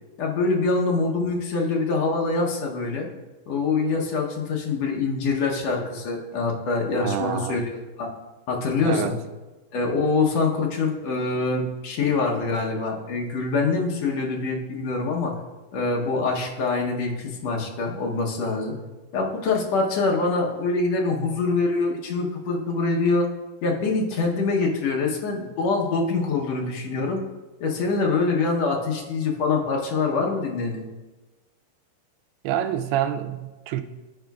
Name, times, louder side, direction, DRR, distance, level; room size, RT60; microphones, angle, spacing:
voice 1, 0.2-3.1 3.5-8.1 8.5-9.2 9.7-15.3 15.7-18.8 19.1-23.3 23.6-27.2 27.6-30.8, left 3 dB, 75° left, 1.5 m, -24 dB
voice 2, 7.0-7.6 8.8-9.2 32.4-33.8, right 10 dB, 85° right, 2.3 m, -27 dB
13.5 x 5.0 x 2.3 m
omnidirectional pair, 4.1 m